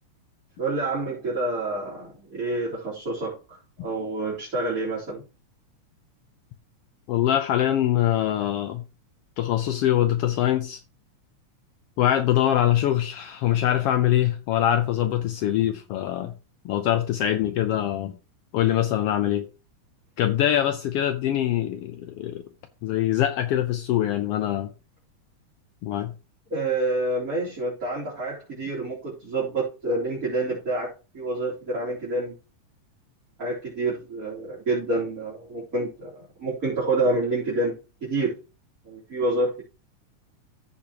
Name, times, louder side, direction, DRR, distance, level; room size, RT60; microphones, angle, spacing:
voice 1, 0.6-5.2 26.5-32.3 33.4-36.1 36.4-37.7 38.0-38.3 38.9-39.6, right 2 dB, 25° right, 4.0 m, -28 dB
voice 2, 7.1-8.8 9.4-10.8 12.0-16.3 16.6-18.1 18.5-19.5 20.2-22.4 22.8-24.7 25.8-26.1, left 12 dB, 80° left, 1.4 m, -23 dB
14.5 x 5.9 x 2.9 m
omnidirectional pair, 3.4 m